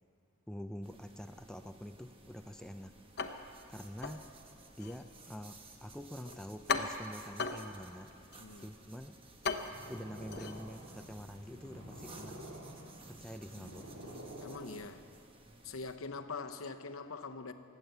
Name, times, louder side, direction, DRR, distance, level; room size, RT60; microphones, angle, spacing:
voice 1, 0.5-3.0 3.7-4.2 4.8-8.1 8.6-9.2 9.8-12.4 13.1-13.9, equal, 5° left, 7 dB, 0.3 m, -46 dB
sound 1, 0.8-16.0, right 3 dB, 25° right, 1.0 m, -57 dB
sound 2, 3.2-11.4, left 4 dB, 50° left, 0.8 m, -41 dB
voice 2, 8.4-8.7 14.4-15.0 15.6-17.5, left 4 dB, 80° left, 8 dB, 0.8 m, -43 dB
Purr, 9.4-15.1, right 1 dB, 65° right, 3.5 m, -49 dB
20.5 x 8.3 x 8.0 m, 2.5 s
head